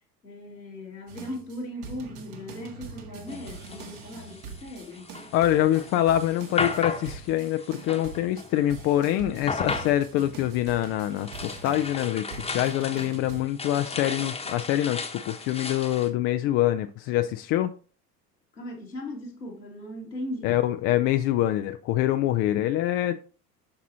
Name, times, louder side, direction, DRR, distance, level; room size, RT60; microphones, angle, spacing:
voice 1, 0.2-5.1 18.5-20.5 23.0-23.2, left 1 dB, 85° left, 2.0 m, -38 dB
sound 1, 1.1-13.4, right 5 dB, 65° right, 1.7 m, -44 dB
sound 2, 3.3-8.9 9.3-16.1, left 4 dB, 10° left, 1.0 m, -35 dB
voice 2, 5.3-17.7 20.4-23.2, left 13 dB, 30° left, 0.3 m, -25 dB
8.6 x 5.9 x 2.7 m
figure-of-eight pair, 70°, 50 cm